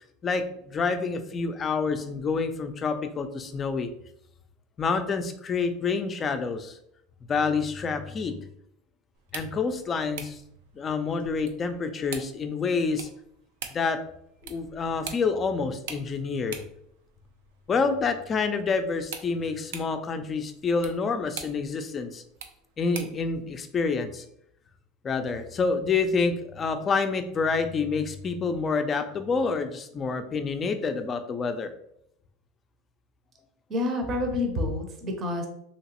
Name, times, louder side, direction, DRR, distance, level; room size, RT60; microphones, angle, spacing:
voice 1, 0.2-3.9 4.8-6.7 7.3-8.4 9.3-10.4 10.8-13.1 13.7-14.0 14.4-16.6 17.7-22.2 22.8-24.2 25.0-31.7, left 4 dB, 30° left, 8 dB, 0.4 m, -28 dB
sound 1, 9.1-23.3, right 7 dB, 90° right, 0.4 m, -45 dB
voice 2, 33.7-35.5, left 2 dB, 35° right, 3 dB, 0.6 m, -28 dB
3.0 x 2.8 x 2.9 m, 0.73 s
supercardioid pair, 125°, 0 cm